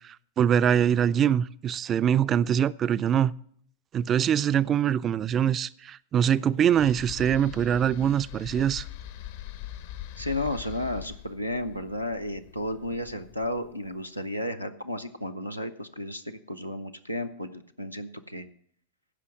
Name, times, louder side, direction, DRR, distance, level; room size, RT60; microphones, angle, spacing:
voice 1, 0.4-3.3 3.9-8.8, right 9 dB, 25° right, 0.3 m, -23 dB
sound 1, 6.7-13.9, left 12 dB, 55° left, 0.7 m, -42 dB
voice 2, 10.2-18.5, left 1 dB, 90° left, 0.6 m, -33 dB
15.0 x 5.7 x 6.1 m
figure-of-eight pair, 90°, 0 cm